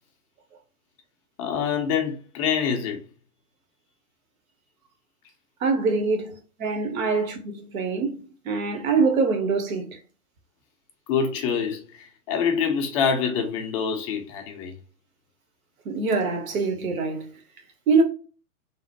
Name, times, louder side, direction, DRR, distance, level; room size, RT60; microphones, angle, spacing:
voice 1, 1.4-3.0 11.1-14.7, left 6 dB, 25° left, 0.4 m, -26 dB
voice 2, 5.6-8.2 8.4-10.0 15.8-17.3 17.9-18.0, right 4 dB, 65° right, 0.9 m, -24 dB
2.9 x 2.0 x 2.8 m
hypercardioid pair, 110°, 44 cm